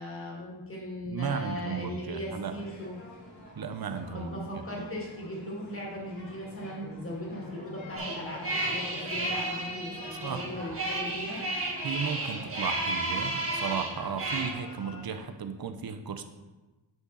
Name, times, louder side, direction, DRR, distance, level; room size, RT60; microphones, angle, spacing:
voice 1, 0.0-3.0 4.1-11.4, left 1 dB, 30° left, -3 dB, 2.2 m, -38 dB
voice 2, 1.1-2.6 3.6-4.3 10.2-10.5 11.8-16.2, right 6 dB, 50° right, 8 dB, 0.7 m, -34 dB
sound 1, 2.3-15.3, left 2 dB, 80° left, 2.1 m, -48 dB
sound 2, 8.0-14.5, right 2 dB, 30° right, 1.5 m, -32 dB
9.1 x 5.6 x 4.0 m, 1.1 s
wide cardioid pair, 170°, 46 cm